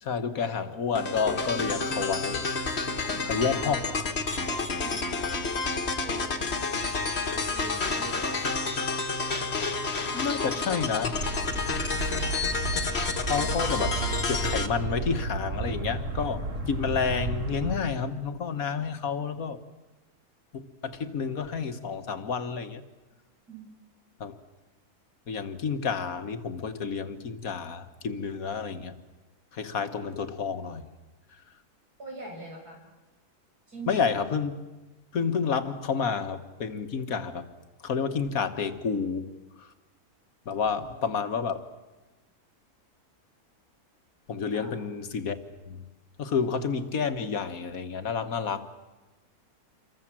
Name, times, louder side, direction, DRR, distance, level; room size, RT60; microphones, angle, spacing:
voice 1, 0.0-2.5 3.3-4.1 5.1-5.3 10.1-11.1 13.2-13.9 14.3-19.6 20.5-22.8 24.2-24.4 25.3-28.9 29.5-30.8 33.9-34.5 35.1-37.5 37.8-39.3 39.6-39.7 40.5-41.6 44.3-45.4 45.7-45.9 46.2-48.7, left 6 dB, 65° left, 1.8 m, -30 dB
sound 1, 0.9-14.7, left 4 dB, 45° left, 1.8 m, -30 dB
voice 2, 2.9-3.9 4.4-5.1 6.0-6.4 7.3-8.5 10.2-11.1 23.5-23.7 32.0-32.8 33.7-34.1 40.7-40.9 44.5-44.8, right 3 dB, 85° right, 6.9 m, -44 dB
sound 2, 11.1-17.8, right 3 dB, 55° right, 2.2 m, -32 dB
27.5 x 23.0 x 7.6 m
omnidirectional pair, 1.6 m